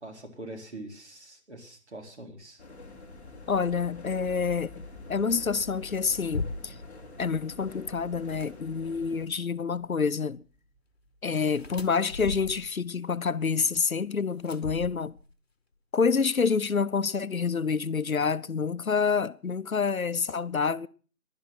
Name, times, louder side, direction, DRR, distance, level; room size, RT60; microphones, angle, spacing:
voice 1, 0.0-2.6, right 1 dB, 50° right, 4.1 m, -43 dB
sound 1, 2.6-9.3, left 2 dB, 10° left, 1.5 m, -47 dB
sound 2, 2.7-13.4, left 2 dB, 10° right, 4.7 m, -54 dB
voice 2, 3.5-4.8 5.1-6.8 7.2-10.4 11.2-15.1 15.9-20.9, left 5 dB, 75° left, 0.9 m, -27 dB
sound 3, 5.9-6.9 8.2-8.5 11.5-12.8 14.4-15.3, left 3 dB, 45° left, 1.3 m, -37 dB
16.0 x 12.0 x 5.9 m
figure-of-eight pair, 170°, 43 cm